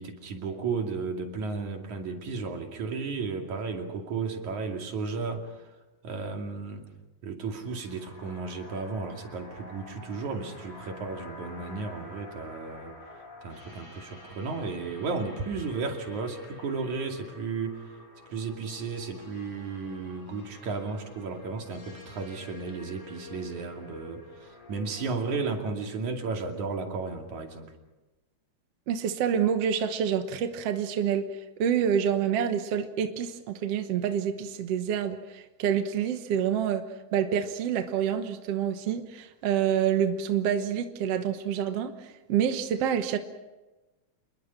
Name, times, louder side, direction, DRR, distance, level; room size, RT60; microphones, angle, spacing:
voice 1, 0.0-5.7 6.0-6.9 7.2-12.9 13.4-18.0 18.3-27.7, right 4 dB, 85° right, 4.0 m, -34 dB
sound 1, 7.6-25.3, left 2 dB, 80° left, 7.7 m, -49 dB
voice 2, 28.9-43.2, right 8 dB, 60° right, 2.1 m, -27 dB
27.5 x 22.0 x 5.9 m
omnidirectional pair, 3.3 m